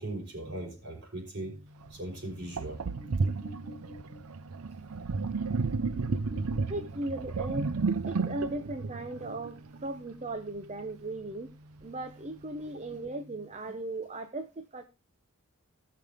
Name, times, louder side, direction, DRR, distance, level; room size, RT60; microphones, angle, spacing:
voice 1, 0.0-1.6 1.9-2.8, right 1 dB, 50° right, 4.8 m, -39 dB
sound 1, 1.3-13.5, left 1 dB, 5° left, 2.7 m, -52 dB
Sink (filling or washing), 1.9-2.0 2.6-9.9, right 4 dB, 75° right, 0.6 m, -32 dB
voice 2, 6.7-7.7 8.0-11.5 11.8-14.8, right 2 dB, 30° right, 0.7 m, -37 dB
17.0 x 6.9 x 3.5 m
head